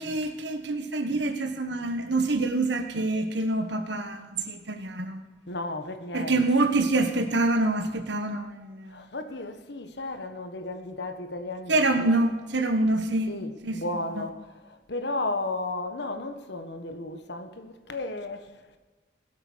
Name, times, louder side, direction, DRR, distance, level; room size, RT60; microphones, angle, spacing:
voice 1, 0.0-5.2 6.1-9.1 11.7-13.3 13.6-14.0, right 2 dB, 65° right, 1.5 m, -26 dB
voice 2, 5.5-6.7 8.9-12.2 13.3-18.5, left 2 dB, 60° left, 1.5 m, -34 dB
20.5 x 8.1 x 6.3 m
head